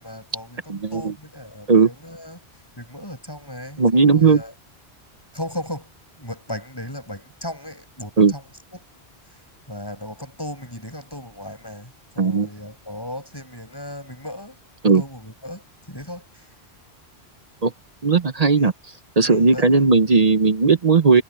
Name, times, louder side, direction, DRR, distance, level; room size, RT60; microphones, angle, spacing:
voice 1, 0.0-2.4 2.8-4.5 5.3-8.4 8.7-9.0 9.3-14.6 14.8-16.5 18.5-18.7 19.2-19.8, left 1 dB, 20° left, 7.4 m, -36 dB
voice 2, 0.7-1.1 1.7-1.9 3.8-4.4 8.2-8.3 12.2-12.5 14.8-15.0 17.6-17.7 18.0-18.7 19.2-21.2, right 4 dB, 40° right, 0.8 m, -16 dB
omnidirectional pair, 1.1 m